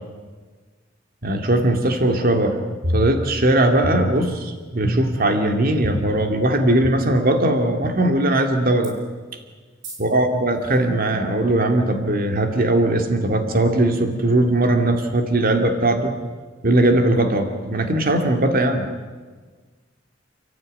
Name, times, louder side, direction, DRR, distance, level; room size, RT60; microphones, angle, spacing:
voice 1, 1.2-8.9 10.0-16.1 16.6-18.9, right 1 dB, 50° right, 5 dB, 2.4 m, -19 dB
sound 1, 2.8-3.5 3.8-4.4 4.8-5.3 5.8-5.9 6.8-6.9 7.8-7.9 8.8-8.9 9.8-10.0, equal, 75° right, 5.8 m, -26 dB
30.0 x 14.5 x 9.4 m, 1.4 s
head